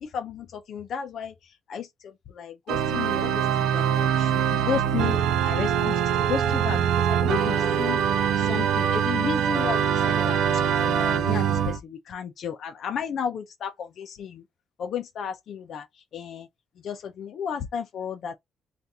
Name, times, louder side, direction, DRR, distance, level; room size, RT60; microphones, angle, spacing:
voice 1, 0.0-1.3 1.7-6.0 6.3-8.0 8.4-10.4 10.8-14.4 14.8-15.9 16.1-16.5 16.8-18.4, left 7 dB, 65° left, 0.5 m, -33 dB
Organ, 2.7-11.8, right 8 dB, 85° right, 0.4 m, -23 dB
2.7 x 2.5 x 3.5 m
cardioid pair, 90°, 0 cm